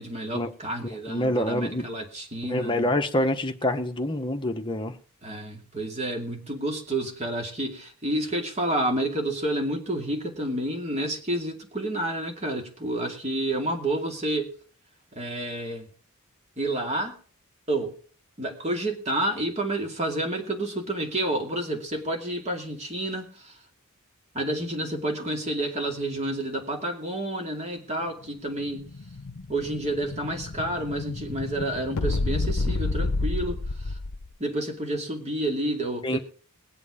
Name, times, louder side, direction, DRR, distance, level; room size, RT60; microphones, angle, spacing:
voice 1, 0.0-2.9 5.2-14.5 15.1-15.9 16.6-17.2 17.7-17.9 18.4-23.5 24.3-28.9 29.5-33.9 34.4-36.2, right 1 dB, 30° right, 2.5 m, -29 dB
voice 2, 0.8-1.9 2.4-5.0 36.0-36.2, left 1 dB, 20° left, 1.0 m, -26 dB
Explosion, 28.2-34.3, left 3 dB, 65° left, 0.8 m, -30 dB
20.5 x 8.0 x 4.9 m
head